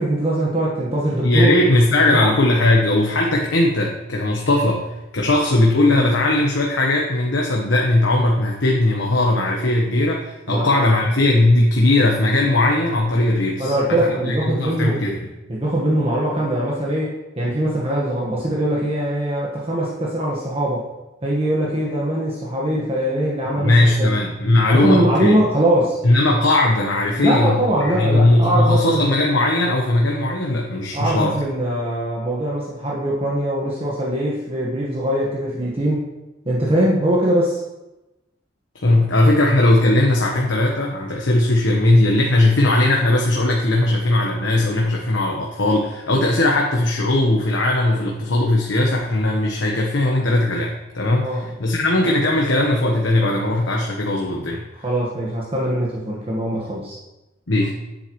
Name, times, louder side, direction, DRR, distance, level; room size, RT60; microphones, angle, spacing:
voice 1, 0.0-1.5 2.1-2.3 10.5-10.7 13.6-15.0 15.5-20.8 21.2-24.1 24.7-26.0 27.2-29.0 30.9-36.1 36.4-37.6 51.2-51.5 54.8-56.9, right 1 dB, 30° right, -4 dB, 1.4 m, -22 dB
voice 2, 1.2-4.9 5.1-15.2 23.5-25.4 26.0-31.3 38.8-54.6 57.5-57.7, left 2 dB, 80° left, -1 dB, 1.1 m, -18 dB
10.5 x 8.0 x 3.1 m, 0.99 s
head